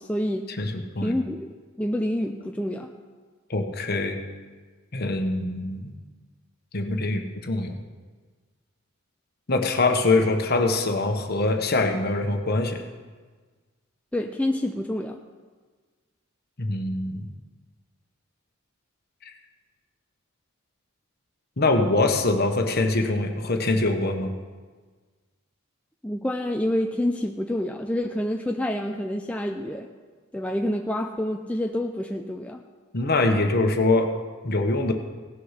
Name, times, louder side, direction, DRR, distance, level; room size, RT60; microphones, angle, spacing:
voice 1, 0.0-0.5 1.0-2.9 14.1-15.2 26.0-29.9 30.3-32.6, left 1 dB, 5° left, 3 dB, 0.4 m, -28 dB
voice 2, 0.6-1.2 3.5-4.2 4.9-5.9 6.7-7.7 9.5-12.8 16.6-17.3 21.6-24.3 32.9-34.1 34.4-34.9, left 2 dB, 50° left, 4 dB, 1.2 m, -23 dB
17.5 x 6.4 x 5.8 m, 1.4 s
head